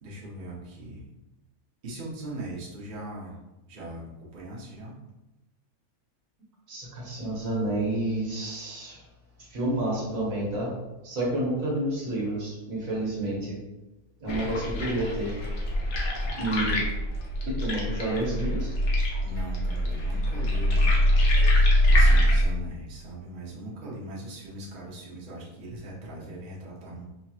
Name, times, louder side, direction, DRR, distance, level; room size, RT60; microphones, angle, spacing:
voice 1, 0.0-1.0 1.8-3.4 3.7-4.9 19.2-20.8 21.9-27.0, right 1 dB, 40° right, -6 dB, 0.9 m, -40 dB
voice 2, 6.7-9.0 9.5-10.7 11.0-13.6 14.2-15.3 16.4-16.8 17.4-18.7, right 1 dB, 65° right, -4 dB, 1.5 m, -29 dB
sound 1, 14.3-22.4, left 1 dB, 75° left, 1.3 m, -23 dB
5.3 x 2.8 x 2.4 m, 1.0 s
omnidirectional pair, 1.5 m